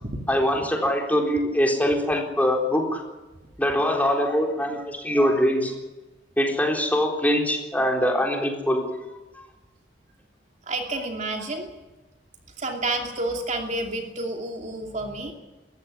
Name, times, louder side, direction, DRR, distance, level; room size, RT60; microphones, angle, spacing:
voice 1, 0.3-3.0 3.6-5.7 6.4-9.0 9.3-9.4, equal, 10° left, 1 dB, 3.9 m, -23 dB
voice 2, 10.7-11.7 12.6-15.3, right 2 dB, 40° right, 2 dB, 2.7 m, -30 dB
20.5 x 15.5 x 10.0 m, 1.1 s
head